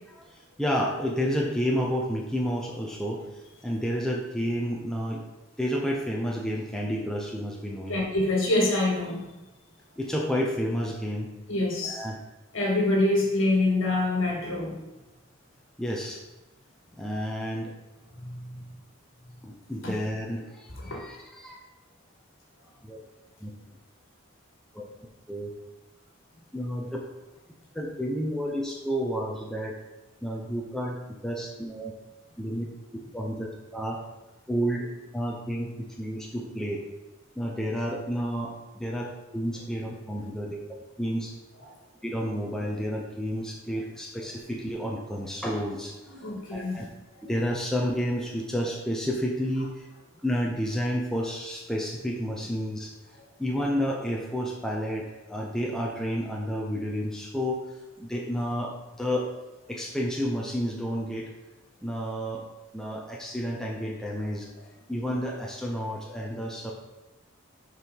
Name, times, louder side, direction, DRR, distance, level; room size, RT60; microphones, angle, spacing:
voice 1, 0.1-5.2 5.6-8.0 10.0-11.3 11.8-12.2 15.8-16.2 16.9-17.7 19.4-21.6 22.8-23.0 23.4-23.5 24.7-24.8 25.3-25.5 26.5-27.0 27.7-29.8 30.2-31.0 31.2-31.9 32.4-32.7 33.1-34.0 34.5-34.9 35.1-35.7 36.0-36.8 37.4-40.6 41.0-41.3 42.0-46.1 46.5-46.8 47.2-49.9 50.2-52.9 53.4-57.6 58.0-59.3 59.7-61.3 61.8-62.4 62.7-64.5 64.9-66.7, equal, ahead, -2 dB, 0.8 m, -30 dB
voice 2, 7.9-9.3 11.5-12.0 12.5-14.8 18.2-18.6 19.8-20.0 20.8-21.0 46.1-46.8, left 2 dB, 65° left, -1 dB, 1.9 m, -26 dB
6.7 x 4.7 x 5.4 m, 1.1 s
head